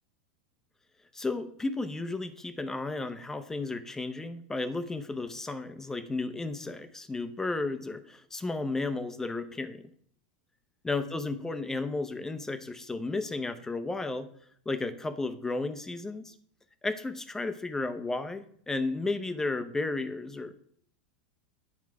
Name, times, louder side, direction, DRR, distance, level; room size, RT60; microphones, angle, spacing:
voice 1, 1.1-9.8 10.8-14.3 14.7-16.3 16.8-20.5, left 3 dB, 10° left, 10 dB, 0.7 m, -33 dB
9.5 x 4.7 x 4.7 m, 0.63 s
supercardioid pair, 125°, 5 cm